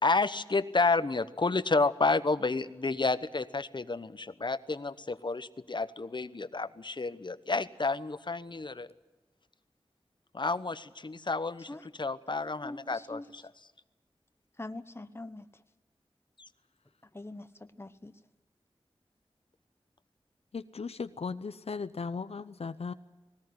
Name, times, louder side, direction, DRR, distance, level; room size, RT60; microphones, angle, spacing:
voice 1, 0.0-8.9 10.3-13.4 16.4-16.5, left 3 dB, 50° left, 13 dB, 1.0 m, -30 dB
voice 2, 12.3-13.3 14.6-15.5 17.1-18.2, left 2 dB, 25° left, 10 dB, 1.1 m, -43 dB
voice 3, 20.5-22.9, left 5 dB, 80° left, 12 dB, 0.7 m, -37 dB
19.5 x 18.5 x 9.7 m, 1.2 s
wide cardioid pair, 80°, 10 cm